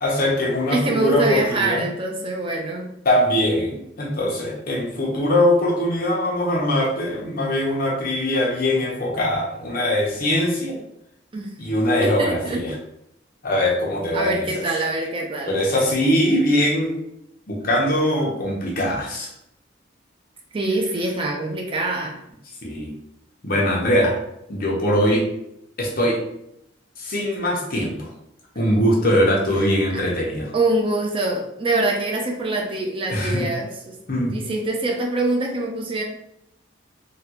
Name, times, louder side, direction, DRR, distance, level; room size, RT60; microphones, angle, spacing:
voice 1, 0.0-1.8 3.0-10.8 11.6-12.7 13.4-14.5 15.5-16.9 17.5-19.3 22.6-22.9 23.4-24.2 24.5-25.3 25.8-26.2 27.0-28.1 28.5-30.5 33.1-33.5 34.1-34.4, left 1 dB, 50° left, -3 dB, 0.8 m, -21 dB
voice 2, 0.7-2.9 11.3-11.5 12.0-12.6 14.1-15.6 20.5-22.2 30.5-34.0 34.3-36.0, right 2 dB, 30° right, 1 dB, 0.4 m, -24 dB
3.3 x 2.3 x 2.9 m, 0.79 s
head